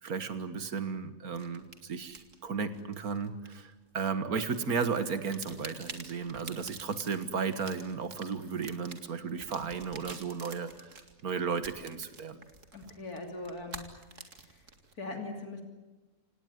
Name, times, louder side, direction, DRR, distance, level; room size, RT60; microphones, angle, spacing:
voice 1, 0.0-10.9 11.2-12.4, right 5 dB, 85° right, 11 dB, 2.0 m, -34 dB
sound 1, 1.3-4.0 4.4-14.9, right 4 dB, 55° right, 2.6 m, -48 dB
voice 2, 12.7-13.9 14.5-14.6 15.0-15.6, left 2 dB, 85° left, 4 dB, 3.4 m, -40 dB
27.5 x 18.5 x 9.4 m, 1.1 s
omnidirectional pair, 1.5 m